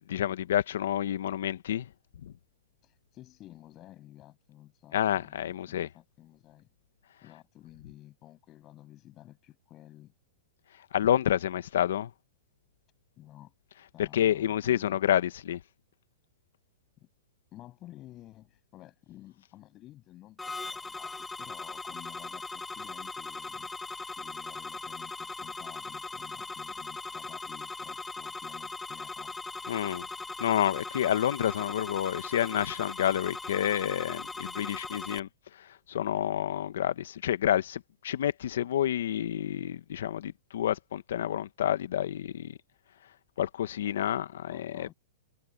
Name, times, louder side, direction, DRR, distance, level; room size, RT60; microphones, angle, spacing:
voice 1, 0.0-1.9 2.2-2.3 4.9-5.9 10.9-12.1 14.0-15.6 29.7-30.1 30.4-35.3 35.6-42.6 43.4-44.5 44.8-44.9, left 10 dB, 70° left, 1.5 m, -29 dB
voice 2, 2.8-6.7 7.2-10.1 13.2-13.5 13.9-15.1 17.0-17.1 17.5-29.4 44.5-44.9, left 14 dB, 30° left, 7.3 m, -52 dB
sound 1, 20.4-35.2, left 3 dB, 10° left, 1.4 m, -39 dB
hypercardioid pair, 125°, 0 cm